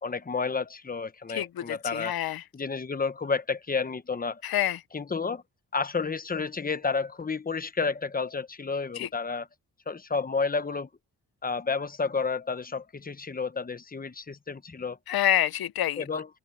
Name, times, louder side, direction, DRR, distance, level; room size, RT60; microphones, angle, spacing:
voice 1, 0.0-2.1 2.5-4.4 4.9-5.4 5.7-9.5 9.9-10.9 11.4-15.0 16.0-16.3, left 4 dB, 25° left, 1.0 m, -31 dB
voice 2, 1.3-2.4 4.4-4.8 8.9-9.1 15.1-16.0, left 12 dB, 85° left, 0.7 m, -27 dB
wide cardioid pair, 115°, 36 cm